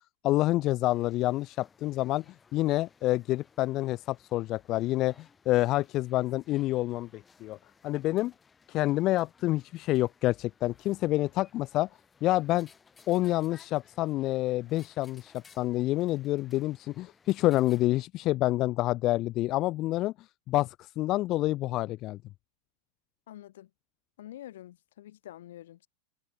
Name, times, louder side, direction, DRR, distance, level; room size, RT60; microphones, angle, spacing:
voice 1, 0.2-2.2 2.5-7.6 7.8-8.3 8.7-11.9 12.2-12.7 13.1-20.1 20.5-22.2, left 17 dB, 40° left, 0.3 m, -28 dB
sound 1, 0.9-17.9, left 5 dB, 15° left, 3.2 m, -61 dB
voice 2, 23.3-23.7 24.2-25.9, left 13 dB, 80° left, 1.2 m, -47 dB
supercardioid pair, 135°, 0 cm